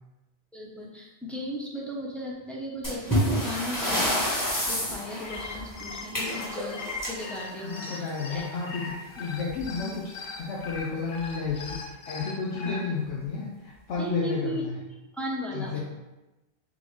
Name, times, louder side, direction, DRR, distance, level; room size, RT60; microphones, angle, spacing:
voice 1, 0.5-4.1 4.7-8.5 9.8-9.9 12.6-12.8 14.0-14.6 15.1-15.8, equal, ahead, -5 dB, 0.6 m, -36 dB
sound 1, 2.8-8.2 9.5-9.6 9.9-10.0 10.7-10.8 11.5-11.7, equal, 15° left, 1.4 m, -29 dB
sound 2, 5.1-12.8, left 3 dB, 60° left, 0.8 m, -39 dB
voice 2, 7.6-14.8 15.5-15.8, left 4 dB, 80° left, -4 dB, 1.0 m, -32 dB
3.8 x 3.7 x 3.1 m, 1.0 s
omnidirectional pair, 1.2 m